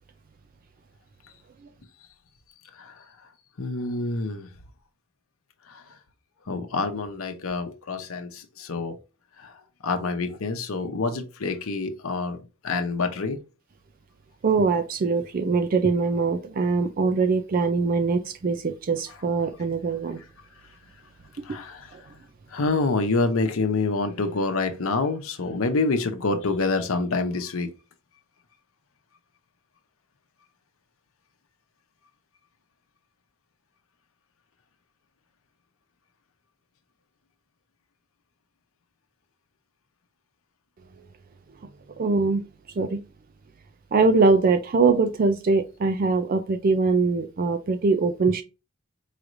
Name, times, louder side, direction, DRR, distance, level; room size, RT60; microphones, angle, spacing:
voice 1, 3.6-4.5 5.7-5.8 6.5-9.0 9.4-9.5 9.8-12.4 12.6-13.4 21.4-21.9 22.5-27.7, left 3 dB, 85° left, 0.8 m, -27 dB
voice 2, 14.4-20.2 21.9-22.0 42.0-42.4 42.8-43.0 43.9-48.4, right 4 dB, 40° right, 0.4 m, -22 dB
4.9 x 3.1 x 2.5 m
head